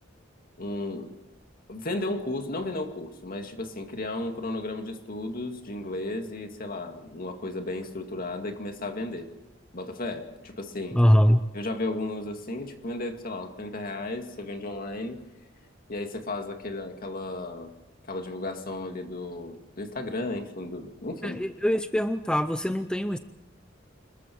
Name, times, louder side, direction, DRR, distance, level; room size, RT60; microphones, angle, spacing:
voice 1, 0.6-1.1 1.7-9.3 9.7-11.0 11.5-15.2 15.9-17.7 18.0-21.4, left 2 dB, 50° left, 5 dB, 2.3 m, -34 dB
voice 2, 10.9-11.4 21.2-23.2, equal, 5° left, 10 dB, 0.6 m, -22 dB
26.5 x 21.5 x 4.7 m, 1.0 s
head